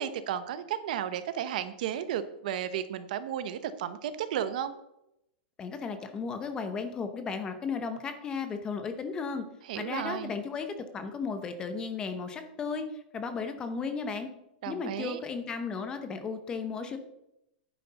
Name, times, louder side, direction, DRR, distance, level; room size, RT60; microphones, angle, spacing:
voice 1, 0.0-4.7 9.7-10.3 14.6-15.2, right 10 dB, 50° right, 12 dB, 0.8 m, -33 dB
voice 2, 5.6-9.4 9.7-14.3 14.7-17.0, left 5 dB, 15° left, 8 dB, 0.8 m, -35 dB
11.0 x 9.2 x 4.1 m, 0.83 s
supercardioid pair, 170°, 6 cm